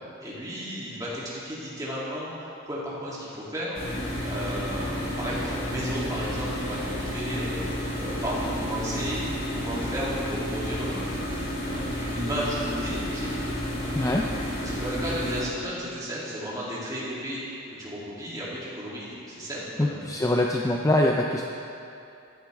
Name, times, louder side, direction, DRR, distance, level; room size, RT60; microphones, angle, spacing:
voice 1, 0.0-4.0 4.2-11.3 11.6-13.3 13.8-14.1 14.6-20.1, equal, 15° right, -8 dB, 2.8 m, -34 dB
sound 1, 3.7-15.4, equal, 60° left, 3.2 m, -31 dB
voice 2, 19.8-21.4, left 1 dB, 15° left, 0 dB, 0.4 m, -23 dB
14.5 x 11.5 x 3.5 m, 2.7 s
head